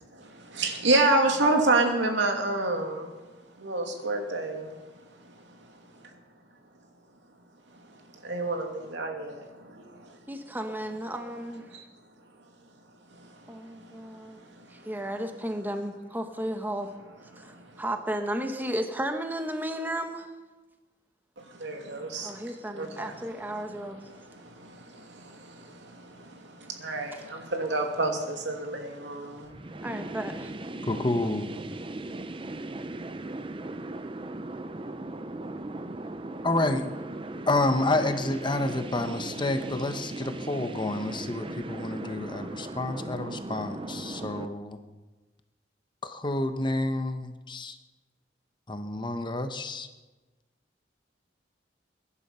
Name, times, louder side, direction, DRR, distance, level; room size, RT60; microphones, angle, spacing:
voice 1, 0.1-3.1 3.6-4.8 8.2-9.3 11.7-11.8 13.1-13.6 17.3-17.6 21.5-22.5 22.7-23.1 24.1-29.5, right 2 dB, 80° right, 3 dB, 2.6 m, -28 dB
voice 2, 10.3-11.7 13.5-14.4 14.7-16.9 17.4-20.3 22.2-24.0 27.1-27.3 29.8-30.5, right 1 dB, 10° right, 5 dB, 1.1 m, -34 dB
sound 1, 29.5-44.4, right 2 dB, 30° right, 0.7 m, -38 dB
voice 3, 30.9-31.5 36.4-36.9 37.5-44.8 46.0-47.8 48.7-49.5, left 2 dB, 25° left, 8 dB, 1.0 m, -29 dB
22.0 x 11.0 x 5.7 m, 1.2 s
head